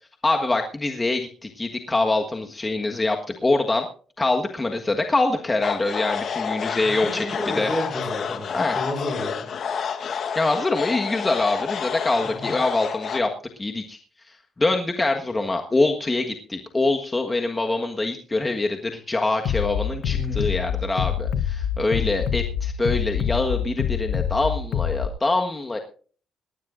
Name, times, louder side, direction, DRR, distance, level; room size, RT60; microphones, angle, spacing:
voice 1, 0.2-3.9 4.2-7.7 8.5-8.8 10.3-13.3 13.6-14.0 14.6-25.8, left 2 dB, 20° left, 3 dB, 1.5 m, -24 dB
sound 1, 5.6-13.2, left 7 dB, 60° left, 1.3 m, -29 dB
voice 2, 6.8-9.4 12.2-12.6 20.0-20.6, left 1 dB, ahead, 0 dB, 6.0 m, -32 dB
Bass drum, 19.4-25.1, left 9 dB, 75° left, 1.0 m, -26 dB
19.0 x 15.0 x 2.6 m, 0.41 s
cardioid pair, 90°, 0 cm